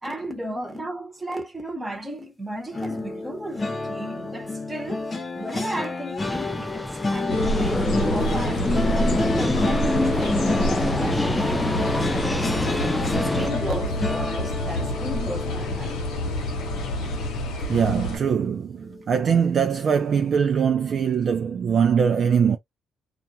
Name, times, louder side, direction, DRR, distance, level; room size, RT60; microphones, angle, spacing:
voice 1, 0.0-5.1 5.3-16.1, right 1 dB, 15° right, 1.0 m, -35 dB
sound 1, 2.7-17.9 18.3-18.5 18.8-19.0, left 3 dB, 30° left, 0.9 m, -31 dB
sound 2, 6.2-13.5, left 1 dB, 10° left, 0.4 m, -25 dB
sound 3, 7.3-18.2, left 1 dB, 90° left, 0.7 m, -28 dB
voice 2, 17.7-22.6, right 7 dB, 55° right, 0.4 m, -22 dB
2.4 x 2.1 x 2.8 m
cardioid pair, 90°, 0 cm